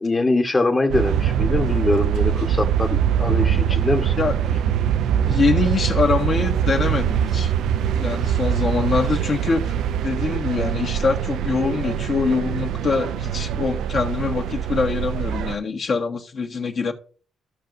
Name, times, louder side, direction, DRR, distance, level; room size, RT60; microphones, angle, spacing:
voice 1, 0.0-4.1, left 2 dB, 25° left, 1.2 m, -23 dB
Marseille (distant), 0.9-15.6, right 9 dB, 80° right, 0.5 m, -23 dB
voice 2, 4.2-4.7 5.2-7.5 8.0-9.7 10.0-16.9, left 4 dB, 50° left, 1.5 m, -24 dB
15.0 x 5.7 x 2.6 m
cardioid pair, 90°, 0 cm